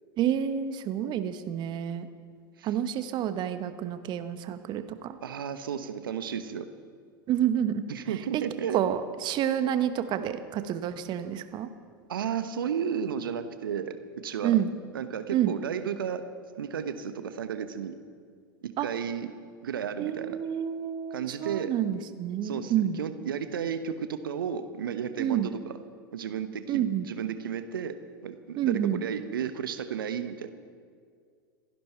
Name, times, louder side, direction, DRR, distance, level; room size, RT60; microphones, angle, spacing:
voice 1, 0.2-2.1 2.6-5.2 7.3-7.7 8.7-11.7 14.4-14.7 15.3-15.5 18.8-18.9 20.0-23.0 25.2-25.5 26.7-27.1 28.6-29.0, right 10 dB, 40° right, 10 dB, 1.1 m, -28 dB
voice 2, 5.2-6.7 7.9-8.9 12.1-14.0 14.2-14.6 14.9-16.2 16.6-17.9 18.6-19.3 19.6-20.4 21.1-21.7 22.4-25.7 26.1-27.9 28.2-30.5, right 8 dB, 75° right, 10 dB, 1.1 m, -33 dB
27.0 x 11.0 x 4.5 m, 2.2 s
figure-of-eight pair, 85°, 12 cm